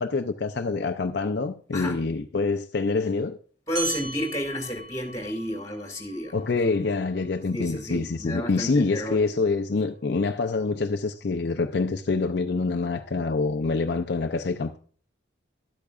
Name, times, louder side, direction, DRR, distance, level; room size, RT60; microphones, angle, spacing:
voice 1, 0.0-3.4 6.3-14.8, left 3 dB, 60° left, 0.5 m, -26 dB
voice 2, 3.7-6.4 7.5-9.2, equal, 15° left, 2.0 m, -31 dB
sound 1, 3.7-8.6, right 3 dB, 85° right, 4.9 m, -39 dB
12.0 x 8.4 x 2.4 m
head